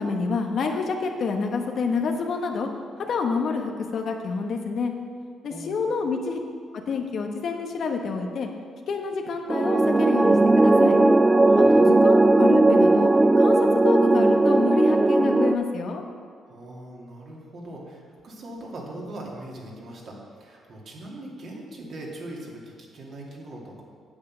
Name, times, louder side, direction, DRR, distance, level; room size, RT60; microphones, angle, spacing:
voice 1, 0.0-2.7 3.0-4.9 5.4-6.4 6.9-8.5 8.9-11.0 11.6-13.1 13.4-16.0, left 4 dB, 60° left, 3 dB, 1.1 m, -28 dB
voice 2, 5.5-5.8 11.4-11.8 16.5-23.8, right 1 dB, 55° right, -3 dB, 2.5 m, -40 dB
sound 1, 9.5-15.6, right 2 dB, 20° right, 0.4 m, -17 dB
8.6 x 7.7 x 6.3 m, 2.1 s
cardioid pair, 90°, 0 cm